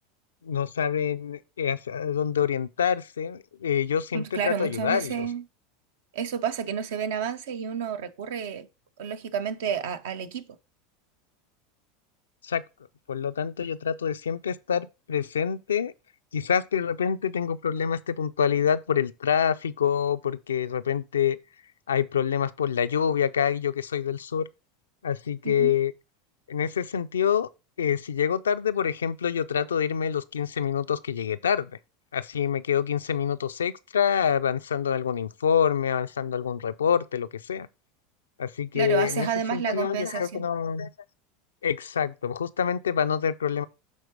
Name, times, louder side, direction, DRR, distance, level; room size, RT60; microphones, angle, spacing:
voice 1, 0.4-5.1 12.4-12.6 13.1-15.9 16.3-21.4 21.9-24.5 25.0-25.9 26.5-27.5 27.8-31.7 32.1-37.7 38.4-40.9 41.6-43.6, left 8 dB, 85° left, 0.4 m, -26 dB
voice 2, 4.1-5.4 6.1-8.7 9.0-10.6 25.4-25.7 38.7-40.5, right 7 dB, 70° right, 0.7 m, -30 dB
7.4 x 3.8 x 4.7 m
hypercardioid pair, 90°, 0 cm